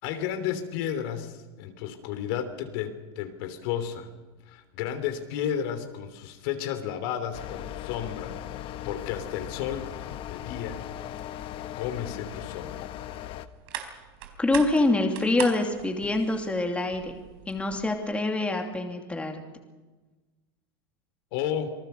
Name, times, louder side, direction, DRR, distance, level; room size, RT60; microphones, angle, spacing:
voice 1, 0.0-4.1 4.5-8.3 8.8-10.8 11.7-12.9 21.3-21.7, left 9 dB, 60° left, 8 dB, 3.1 m, -32 dB
sound 1, 7.3-13.5, left 12 dB, 40° left, 1.2 m, -38 dB
sound 2, 12.8-18.0, right 10 dB, 70° right, 4.1 m, -41 dB
voice 2, 14.4-17.2 17.5-19.4, left 2 dB, 10° left, 3 dB, 2.7 m, -25 dB
27.0 x 19.5 x 6.9 m, 1.2 s
supercardioid pair, 125°, 13 cm